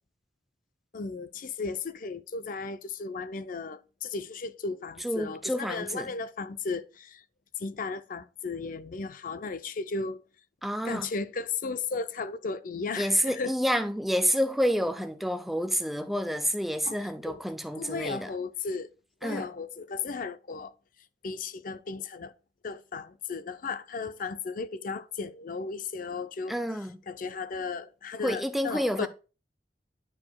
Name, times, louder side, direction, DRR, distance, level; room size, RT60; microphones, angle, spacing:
voice 1, 0.9-7.2 7.6-10.2 10.8-13.6 16.8-17.4 17.8-18.9 19.2-20.7 21.2-22.3 22.6-26.6 27.1-29.1, left 4 dB, 50° left, 0.5 m, -35 dB
voice 2, 5.0-6.1 10.6-11.1 13.0-18.3 19.2-19.5 26.5-27.0 28.2-29.1, equal, ahead, 0.5 m, -29 dB
10.5 x 4.8 x 2.2 m
head